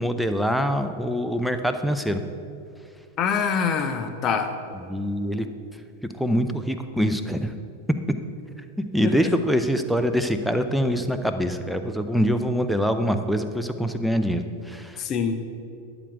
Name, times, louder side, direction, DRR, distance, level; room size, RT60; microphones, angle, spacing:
voice 1, 0.0-2.2 4.8-5.5 6.1-7.5 8.8-15.0, equal, ahead, 7 dB, 0.7 m, -24 dB
voice 2, 3.2-4.6 9.0-9.3 15.0-15.4, left 6 dB, 30° left, 8 dB, 0.9 m, -25 dB
11.5 x 5.2 x 8.2 m, 2.5 s
figure-of-eight pair, 90°, 0 cm